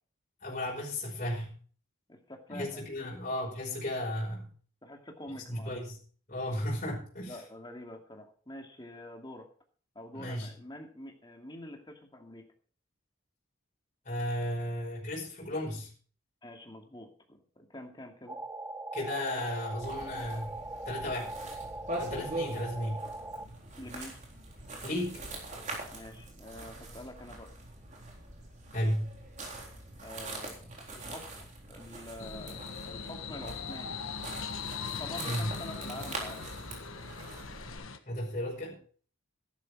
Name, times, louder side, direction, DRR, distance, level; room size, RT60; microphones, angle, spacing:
voice 1, 0.4-1.5 2.5-4.5 5.5-6.0 6.3-7.4 10.1-10.5 14.0-15.9 18.9-20.6 20.8-21.3 22.0-23.0 24.8-25.2 28.7-29.1 35.2-35.5 38.1-38.8, left 1 dB, 35° left, -3 dB, 5.2 m, -34 dB
voice 2, 2.1-3.1 4.8-5.9 7.2-9.5 9.9-12.5 16.4-18.4 23.8-24.2 25.9-27.5 30.0-30.7 30.9-31.2 31.7-34.0 35.0-36.5, left 1 dB, 20° left, 2 dB, 2.4 m, -46 dB
sound 1, 18.3-23.5, right 2 dB, 10° right, 0.5 m, -40 dB
sound 2, 19.8-37.8, right 2 dB, 35° right, 3.9 m, -43 dB
sound 3, 32.2-38.0, left 5 dB, 85° left, 1.5 m, -40 dB
14.0 x 12.0 x 4.7 m, 0.43 s
head